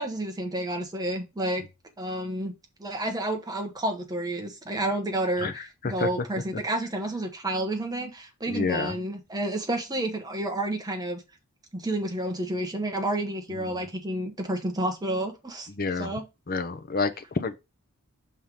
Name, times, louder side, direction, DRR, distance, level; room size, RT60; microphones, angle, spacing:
voice 1, 0.0-1.6 2.0-2.5 2.8-11.2 11.7-15.7 16.0-16.2, right 1 dB, 15° right, 1.3 m, -30 dB
voice 2, 8.5-8.9 13.6-13.7 15.8-16.1 16.5-17.6, left 4 dB, 40° left, 0.7 m, -28 dB
5.7 x 3.6 x 4.9 m
head